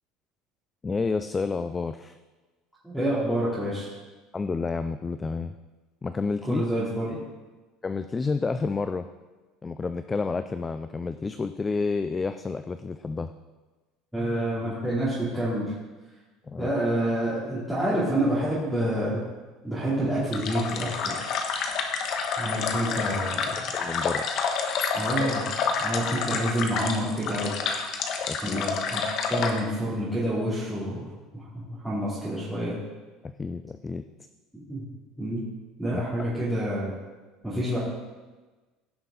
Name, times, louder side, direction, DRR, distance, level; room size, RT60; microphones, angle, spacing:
voice 1, 0.8-2.1 4.3-5.5 6.0-6.6 7.8-9.1 9.6-13.3 16.5-16.7 23.7-24.3 28.3-28.6 33.2-34.0 35.9-36.3 37.5-37.6, left 4 dB, 20° left, 10 dB, 0.4 m, -30 dB
voice 2, 2.8-3.9 6.4-7.2 14.1-15.7 16.6-19.2 19.6-21.2 22.4-23.5 24.9-25.4 25.8-27.5 28.4-29.0 29.3-31.0 31.3-32.8 34.5-34.8 35.2-35.5 35.8-36.9 37.4-37.8, right 1 dB, 5° right, -11 dB, 2.9 m, -28 dB
sound 1, 20.3-29.6, left 5 dB, 55° left, 1.2 m, -29 dB
16.5 x 5.9 x 3.9 m, 1.3 s
supercardioid pair, 120°, 0 cm